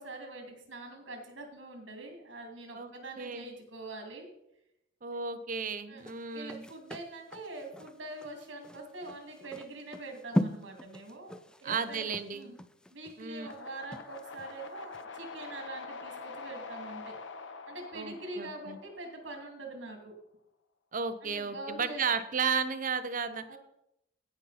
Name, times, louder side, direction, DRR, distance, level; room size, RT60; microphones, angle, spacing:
voice 1, 0.0-4.3 5.9-6.0 6.3-12.6 12.9-17.2 17.7-20.1 21.2-22.0 23.5-23.6, right 2 dB, 75° right, 2 dB, 2.5 m, -44 dB
voice 2, 3.2-3.5 5.0-6.6 11.6-12.5 13.2-13.5 17.9-18.8 20.9-23.6, right 5 dB, 45° right, 11 dB, 0.7 m, -33 dB
sound 1, 6.0-14.5 14.9-15.0, equal, 5° left, 0.3 m, -38 dB
sound 2, 13.4-19.5, left 4 dB, 75° left, 0.9 m, -46 dB
16.0 x 5.6 x 4.1 m, 0.81 s
head